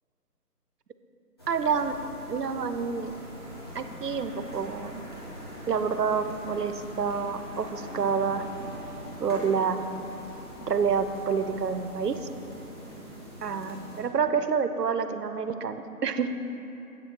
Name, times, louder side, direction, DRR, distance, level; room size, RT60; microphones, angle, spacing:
sound 1, 1.4-14.0, equal, 15° left, 1.2 m, -42 dB
voice 1, 1.5-2.0 2.3-3.1 3.7-5.0 5.7-8.5 9.2-9.9 10.7-12.2 13.4-16.3, right 6 dB, 90° right, 10 dB, 0.8 m, -28 dB
8.3 x 6.8 x 6.2 m, 2.9 s
figure-of-eight pair, 170°, 46 cm